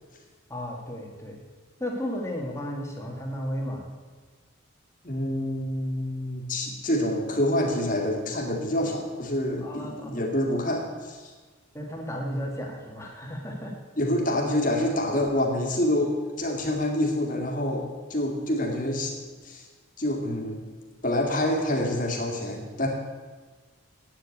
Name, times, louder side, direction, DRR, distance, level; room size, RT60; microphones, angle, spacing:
voice 1, 0.5-1.4 1.8-3.9 9.6-10.2 11.7-13.7, equal, 15° left, 0 dB, 1.7 m, -34 dB
voice 2, 5.0-11.3 14.0-19.2 19.4-19.7 20.0-20.6 21.0-22.9, left 1 dB, 40° left, 1 dB, 2.1 m, -27 dB
9.1 x 7.9 x 8.5 m, 1.4 s
head